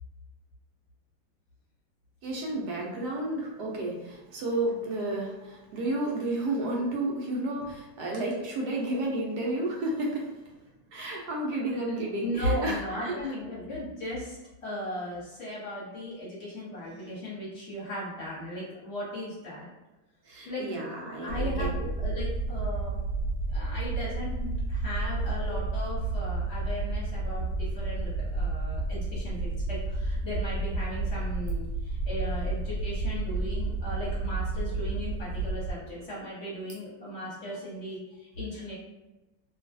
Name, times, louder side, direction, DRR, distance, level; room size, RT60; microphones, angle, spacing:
voice 1, 2.2-10.3 10.9-13.2 20.3-21.9, right 1 dB, 70° right, -2 dB, 1.0 m, -31 dB
voice 2, 11.9-14.4 14.6-19.7 20.4-20.8 21.2-23.0 23.5-38.7, left 1 dB, 40° left, -8 dB, 1.2 m, -37 dB
sound 1, 21.3-35.7, right 2 dB, 70° left, 1.2 m, -31 dB
3.0 x 2.3 x 2.5 m, 1.1 s
omnidirectional pair, 2.1 m